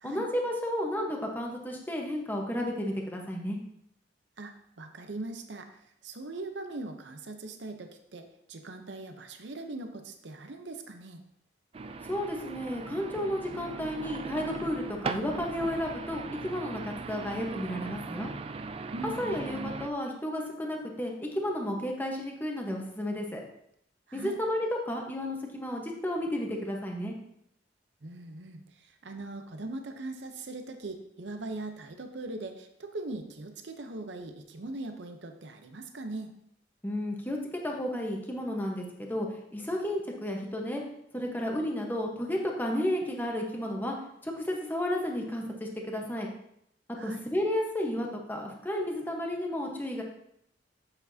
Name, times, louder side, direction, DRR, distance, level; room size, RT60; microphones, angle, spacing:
voice 1, 0.0-3.6 12.1-18.3 19.2-23.4 24.1-27.1 36.8-40.8 41.1-43.9 44.2-46.3 47.0-50.0, left 1 dB, 10° left, 0 dB, 1.1 m, -32 dB
voice 2, 4.4-11.2 18.9-19.2 24.1-24.3 28.0-36.3 47.0-47.2, right 2 dB, 65° right, 6 dB, 0.8 m, -40 dB
sound 1, 11.7-19.9, right 4 dB, 30° right, 0.4 m, -39 dB
8.0 x 7.1 x 2.8 m, 0.74 s
head